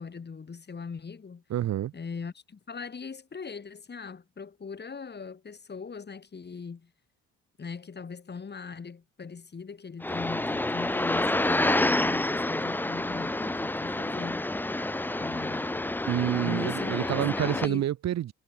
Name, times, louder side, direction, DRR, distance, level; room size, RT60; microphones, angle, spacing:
voice 1, 0.0-1.4 1.9-6.9 7.6-14.5 15.2-16.0 16.4-17.9, left 5 dB, 35° left, 3.4 m, -40 dB
voice 2, 1.5-1.9 16.1-18.3, right 12 dB, 60° right, 0.9 m, -28 dB
sound 1, 10.0-17.7, left 2 dB, 5° left, 0.6 m, -28 dB
cardioid pair, 90°, 30 cm